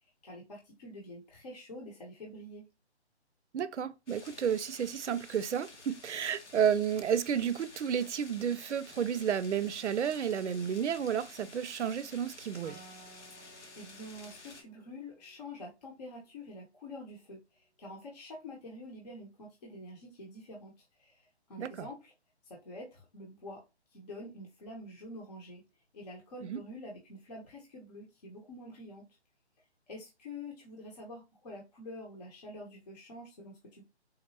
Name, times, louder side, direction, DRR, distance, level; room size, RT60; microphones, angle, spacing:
voice 1, 0.2-2.6 13.3-22.1 22.4-23.6 23.9-25.6 25.9-29.0 29.9-33.8, left 1 dB, 35° left, 0.7 m, -47 dB
voice 2, 3.5-12.8 21.6-21.9 26.5-26.6, right 8 dB, 85° right, 0.5 m, -31 dB
sound 1, 4.1-14.6, left 3 dB, 85° left, 1.1 m, -52 dB
Acoustic guitar, 12.6-16.1, right 3 dB, 15° right, 0.8 m, -57 dB
4.0 x 2.0 x 2.6 m
hypercardioid pair, 155°, 34 cm